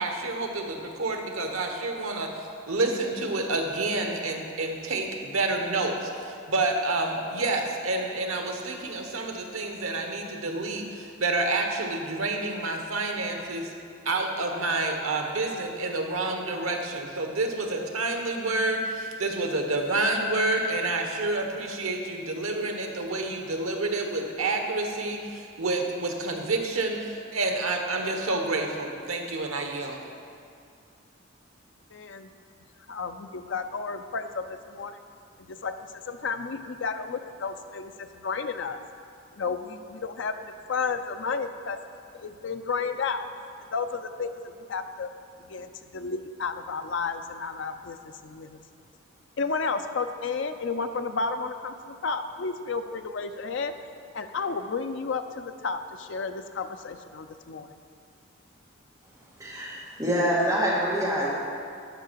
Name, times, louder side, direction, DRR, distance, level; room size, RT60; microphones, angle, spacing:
voice 1, 0.0-2.3 2.7-13.7 14.0-30.0, right 2 dB, 85° right, 3 dB, 1.1 m, -28 dB
voice 2, 31.9-32.3 32.9-35.0 35.4-35.7 36.1-38.8 39.3-41.8 42.1-43.3 43.7-44.4 44.7-45.1 45.5-48.6 49.4-53.7 54.1-57.7, left 4 dB, 60° left, 8 dB, 0.5 m, -32 dB
voice 3, 59.4-61.3, equal, 15° right, -8 dB, 2.0 m, -25 dB
12.0 x 5.6 x 4.6 m, 2.4 s
head